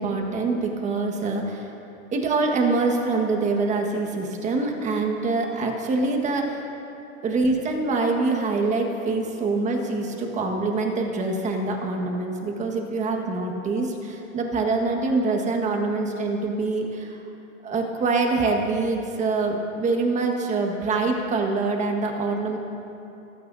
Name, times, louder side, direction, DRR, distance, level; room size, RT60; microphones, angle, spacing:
voice 1, 0.0-1.7 2.1-6.7 7.2-17.2 17.6-22.6, right 3 dB, 15° right, 3 dB, 1.5 m, -25 dB
29.5 x 15.5 x 2.7 m, 2.9 s
supercardioid pair, 150°, 41 cm